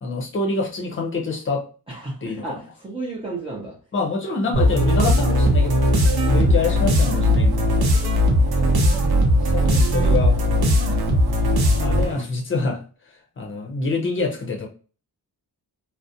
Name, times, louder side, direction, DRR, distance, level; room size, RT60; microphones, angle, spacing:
voice 1, 0.0-1.6 2.2-2.4 3.9-5.9 6.3-7.7 8.6-8.7 9.5-10.4 10.9-11.0 11.8-12.8 13.4-14.7, left 3 dB, 30° left, 0 dB, 0.6 m, -26 dB
voice 2, 1.9-3.7 6.4-6.6, right 2 dB, 15° right, -6 dB, 0.5 m, -32 dB
sound 1, 4.5-12.2, equal, 70° right, 0.7 m, -18 dB
2.4 x 2.1 x 2.7 m, 0.37 s
wide cardioid pair, 150°, 39 cm